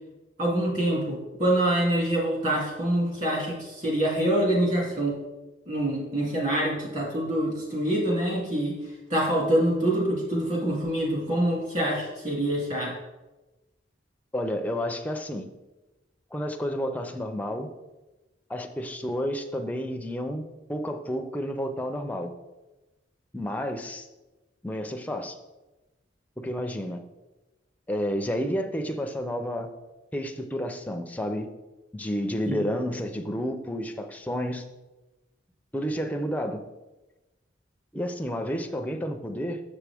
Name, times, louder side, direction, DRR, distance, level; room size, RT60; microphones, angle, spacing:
voice 1, 0.4-5.1 5.7-8.8 9.1-12.9 32.5-32.6, right 1 dB, 40° right, -4 dB, 2.4 m, -25 dB
voice 2, 14.3-15.5 16.3-17.7 18.5-22.3 23.3-24.1 24.6-25.4 26.4-27.0 27.9-29.7 30.1-31.5 31.9-34.6 35.7-36.6 37.9-39.6, equal, 10° left, 5 dB, 0.4 m, -30 dB
7.2 x 6.0 x 3.4 m, 1.1 s
head